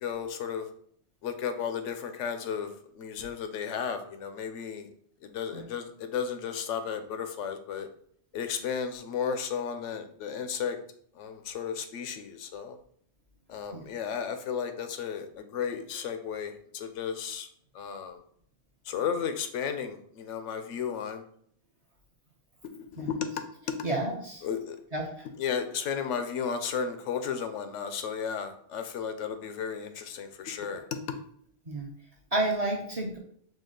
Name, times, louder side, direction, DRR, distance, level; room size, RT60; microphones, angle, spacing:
voice 1, 0.0-0.7 1.2-2.7 3.0-4.9 5.2-7.9 8.3-10.8 11.2-12.8 13.5-17.5 17.7-18.2 18.9-21.2 22.9-23.3 23.8-23.9 24.4-24.8 25.4-31.2, left 7 dB, 80° left, 8 dB, 0.9 m, -34 dB
voice 2, 23.8-24.4 24.9-25.1 31.7-31.9 32.3-33.2, right 2 dB, 40° right, -1 dB, 0.7 m, -31 dB
5.1 x 2.3 x 3.7 m, 0.63 s
omnidirectional pair, 1.2 m